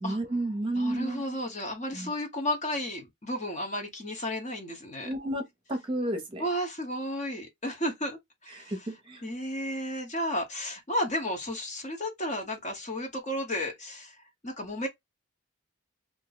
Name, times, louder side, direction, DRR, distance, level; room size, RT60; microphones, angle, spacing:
voice 1, 0.0-1.4 1.9-2.1 5.0-6.4 8.5-9.2, right 1 dB, 25° right, 0.8 m, -32 dB
voice 2, 0.7-5.1 6.4-8.2 8.4-8.7 9.2-14.2 14.4-14.9, left 1 dB, 35° left, 0.9 m, -33 dB
2.6 x 2.2 x 3.9 m
head